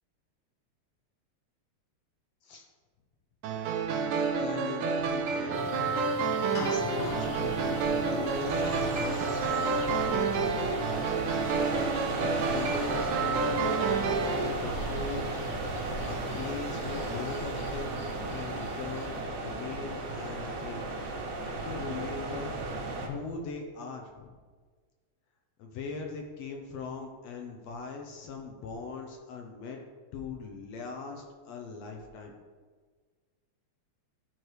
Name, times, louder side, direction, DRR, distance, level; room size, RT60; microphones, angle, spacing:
sound 1, 3.4-14.5, right 5 dB, 85° right, 2.2 m, -29 dB
voice 1, 4.4-5.6 6.6-10.8 12.2-15.4 16.0-18.0 18.3-19.2 19.4-20.9 21.6-22.6 23.0-24.3 25.6-29.8 30.1-32.3, left 5 dB, 75° left, 2 dB, 1.7 m, -40 dB
sound 2, 5.5-19.2, left 3 dB, 55° left, 2.0 m, -44 dB
sound 3, 6.9-23.1, right 2 dB, 70° right, 2.2 m, -35 dB
12.5 x 4.5 x 3.2 m, 1.5 s
omnidirectional pair, 3.4 m